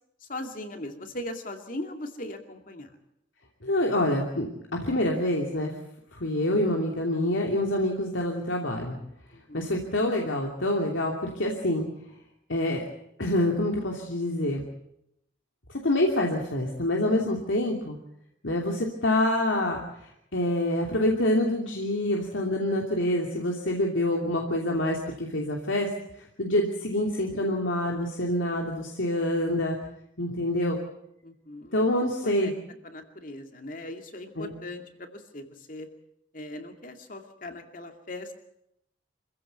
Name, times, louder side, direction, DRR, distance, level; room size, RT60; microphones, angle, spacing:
voice 1, 0.3-2.9 9.3-9.6 31.2-31.9 32.2-32.5 32.8-35.9 36.3-38.3, left 1 dB, 45° left, 5 dB, 2.5 m, -39 dB
voice 2, 3.6-5.7 6.1-9.0 9.5-11.9 12.5-12.8 13.2-14.6 15.8-18.0 18.4-25.9 26.4-29.8 30.2-30.8 31.7-32.5 34.4-34.6, left 1 dB, 85° left, 0 dB, 2.8 m, -26 dB
26.0 x 15.5 x 8.1 m, 0.79 s
head